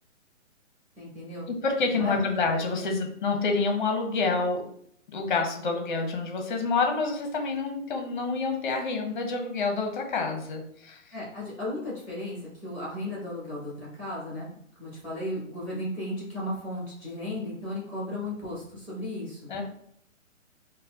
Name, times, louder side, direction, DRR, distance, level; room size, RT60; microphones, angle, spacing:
voice 1, 1.0-1.5 1.9-2.5 11.1-14.4 14.8-19.4, left 1 dB, 5° right, -7 dB, 1.3 m, -35 dB
voice 2, 1.5-4.6 5.1-11.0 19.5-19.6, left 4 dB, 40° left, 3 dB, 0.7 m, -28 dB
4.1 x 2.2 x 2.4 m, 0.68 s
hypercardioid pair, 150°, 40 cm